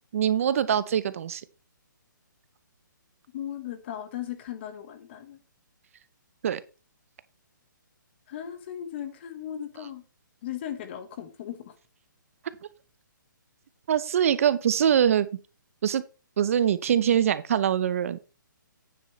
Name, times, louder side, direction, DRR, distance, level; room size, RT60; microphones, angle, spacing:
voice 1, 0.1-1.4 6.4-6.6 13.9-15.3 15.8-16.0 16.4-18.2, right 9 dB, 45° right, 0.6 m, -23 dB
voice 2, 3.3-5.4 8.3-10.0 10.4-11.7, left 10 dB, 35° left, 1.3 m, -37 dB
9.4 x 8.2 x 3.1 m
hypercardioid pair, 160°, 11 cm